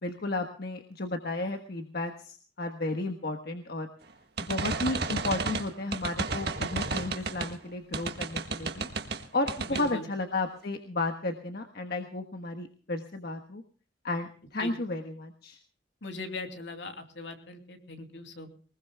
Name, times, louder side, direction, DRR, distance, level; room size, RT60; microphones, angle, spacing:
voice 1, 0.0-3.9 4.4-8.9 9.3-13.6 14.0-15.6, left 2 dB, 60° left, 5 dB, 1.4 m, -33 dB
sound 1, 4.4-7.5 7.9-9.2 9.5-9.9, right 4 dB, 60° right, 1.6 m, -32 dB
voice 2, 9.7-10.0 14.6-14.8 16.0-18.5, left 2 dB, 75° left, 5 dB, 2.9 m, -40 dB
23.0 x 20.5 x 2.3 m, 0.41 s
head